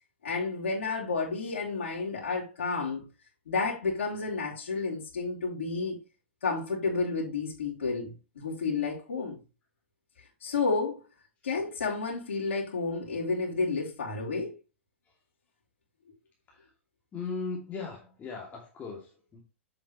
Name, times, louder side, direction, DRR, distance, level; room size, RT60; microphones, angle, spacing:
voice 1, 0.2-3.1 3.5-6.0 6.4-9.4 10.4-11.0 11.4-14.6, left 4 dB, 75° left, 3.5 m, -31 dB
voice 2, 17.1-19.4, left 4 dB, 25° left, 2.6 m, -38 dB
8.8 x 7.6 x 3.2 m
hypercardioid pair, 110°, 7 cm